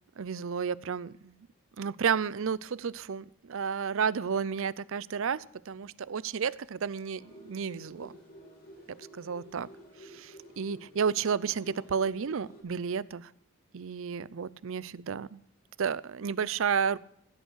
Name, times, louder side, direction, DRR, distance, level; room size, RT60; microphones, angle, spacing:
voice 1, 0.2-1.3 1.8-8.1 9.0-9.7 10.0-13.2 13.7-15.4 15.8-17.0, right 6 dB, 70° right, 20 dB, 0.5 m, -32 dB
sound 1, 7.2-12.6, equal, 45° left, 4.7 m, -51 dB
16.0 x 8.0 x 6.3 m, 0.74 s
head